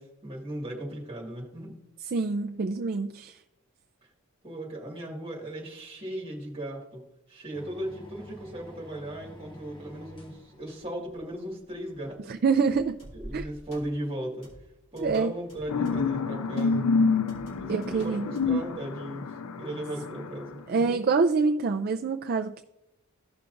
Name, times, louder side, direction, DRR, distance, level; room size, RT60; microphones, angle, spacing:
voice 1, 0.0-1.8 4.4-7.0 7.3-12.2 12.6-12.7 13.1-14.5 14.9-16.9 17.6-19.3 19.6-21.0, right 1 dB, 25° right, -1 dB, 1.9 m, -37 dB
voice 2, 2.1-3.4 12.3-13.0 13.3-13.4 15.0-15.3 17.7-18.3 20.7-22.6, right 4 dB, 45° right, 4 dB, 0.4 m, -26 dB
sound 1, 7.5-13.8, equal, 25° left, 1.2 m, -48 dB
sound 2, 12.6-13.4 13.7-14.1 14.4-16.2 16.6-16.8 17.3-18.7, equal, 45° left, 3.1 m, -52 dB
sound 3, 15.7-20.5, left 4 dB, 90° left, 0.5 m, -28 dB
15.0 x 5.8 x 2.5 m, 0.85 s
head